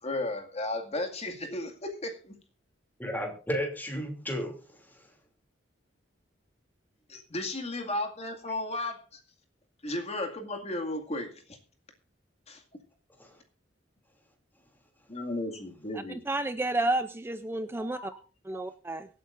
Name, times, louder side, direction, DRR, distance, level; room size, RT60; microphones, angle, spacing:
voice 1, 0.0-2.4 7.1-9.2 9.8-11.6 12.5-12.6 15.1-16.2, left 2 dB, 35° left, 2.1 m, -34 dB
voice 2, 3.0-4.6 13.2-13.3 17.6-18.1 18.5-18.7, equal, 10° left, 2.8 m, -34 dB
voice 3, 16.3-18.1 18.5-19.1, right 2 dB, 10° right, 0.5 m, -30 dB
24.0 x 9.0 x 2.6 m
head